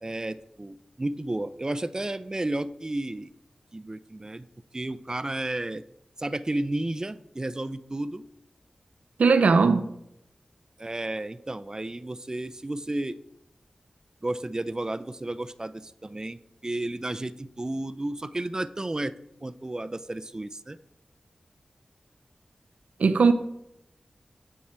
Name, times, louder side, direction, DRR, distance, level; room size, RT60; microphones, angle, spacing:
voice 1, 0.0-3.3 3.7-4.5 4.7-5.8 6.2-8.2 10.8-13.2 14.2-19.1 19.4-20.8, right 1 dB, 30° right, 0.4 m, -32 dB
voice 2, 9.2-9.9 23.0-23.3, right 4 dB, 85° right, 0.5 m, -19 dB
11.0 x 4.6 x 4.3 m
cardioid pair, 45°, 2 cm